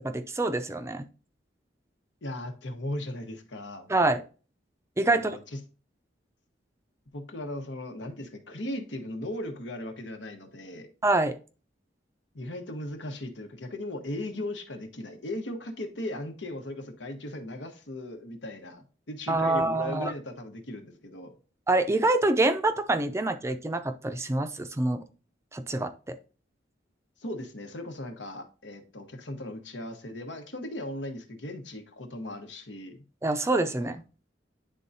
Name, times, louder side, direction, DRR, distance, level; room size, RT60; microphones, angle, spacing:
voice 1, 0.0-1.1 3.9-4.2 5.0-5.4 11.0-11.4 19.3-20.1 21.7-25.0 25.5-26.1 33.2-34.0, right 2 dB, 15° right, 9 dB, 0.4 m, -26 dB
voice 2, 2.2-3.9 5.1-5.4 7.1-10.9 12.3-21.3 27.2-33.0 33.8-34.0, left 1 dB, 85° left, 5 dB, 1.2 m, -37 dB
9.9 x 3.8 x 2.7 m, 0.36 s
head